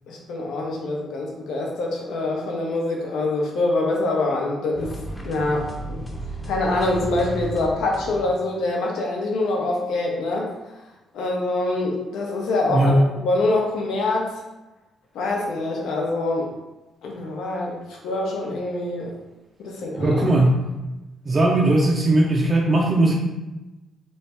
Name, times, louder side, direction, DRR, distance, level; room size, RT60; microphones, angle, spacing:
voice 1, 0.1-4.9 5.2-5.7 6.5-10.5 11.1-14.4 15.1-16.5 17.0-19.1 19.6-20.2, left 2 dB, 80° left, -1 dB, 0.8 m, -25 dB
sound 1, 4.7-8.5, right 1 dB, 10° left, 0.7 m, -34 dB
voice 2, 20.0-20.6 21.3-23.1, right 2 dB, 30° right, -2 dB, 0.5 m, -18 dB
3.2 x 2.3 x 4.2 m, 1.1 s
cardioid pair, 90°, 0 cm